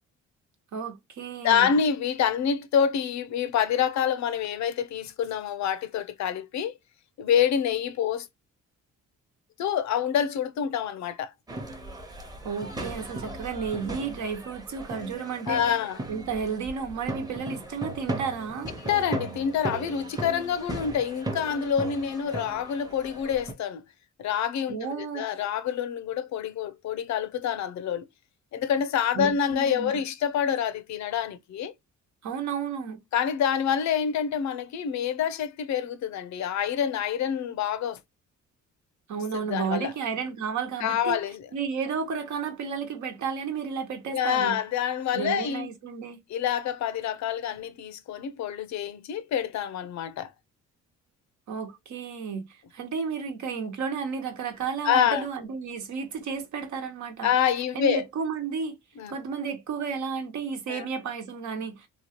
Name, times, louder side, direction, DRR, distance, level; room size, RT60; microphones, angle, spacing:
voice 1, 0.7-1.7 12.4-15.6 16.1-18.7 24.7-25.2 29.1-29.9 32.2-33.0 39.1-41.2 41.5-44.6 45.1-46.2 51.5-52.5 52.7-57.3 57.7-58.8 59.1-61.9, right 6 dB, 70° right, 1.0 m, -32 dB
voice 2, 1.4-6.8 7.2-8.3 9.6-11.3 15.5-16.0 18.8-23.8 24.2-28.0 28.5-31.7 33.1-38.0 39.3-39.9 40.8-41.5 44.1-45.7 46.3-50.3 54.8-55.3 57.2-58.0 59.0-59.1 60.7-60.9, left 8 dB, 65° left, 0.6 m, -27 dB
sound 1, 11.5-23.5, right 1 dB, 15° right, 0.8 m, -37 dB
2.9 x 2.3 x 2.8 m
cardioid pair, 90°, 30 cm